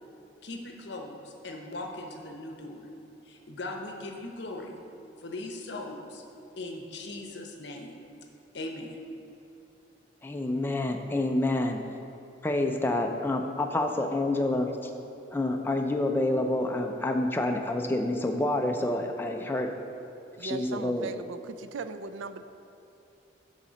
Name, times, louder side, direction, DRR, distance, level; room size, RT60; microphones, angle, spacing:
voice 1, 0.4-2.9 3.2-4.8 5.2-6.2 6.6-7.9 8.5-9.0, left 2 dB, 60° left, 2 dB, 0.8 m, -39 dB
voice 2, 10.2-11.8 12.4-14.7 15.3-19.7 20.4-21.1, left 1 dB, 10° left, 3 dB, 0.3 m, -28 dB
voice 3, 20.4-22.4, right 4 dB, 80° right, 11 dB, 0.4 m, -38 dB
6.5 x 4.2 x 6.2 m, 3.0 s
head